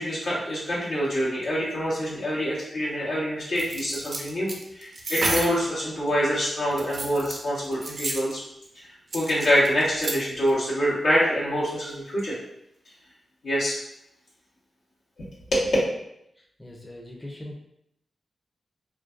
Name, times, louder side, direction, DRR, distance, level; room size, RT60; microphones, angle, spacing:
voice 1, 0.0-8.4 8.7-8.8 9.1-12.4 13.4-13.8 15.5-15.8, equal, 80° left, -9 dB, 1.1 m, -25 dB
sound 1, 3.5-5.6 6.7-8.3 9.1-10.2 10.5-10.6, right 2 dB, 60° right, 0.4 m, -31 dB
voice 2, 16.6-17.6, left 1 dB, 15° left, -1 dB, 0.5 m, -40 dB
2.4 x 2.2 x 2.4 m, 0.77 s
cardioid pair, 45°, 0 cm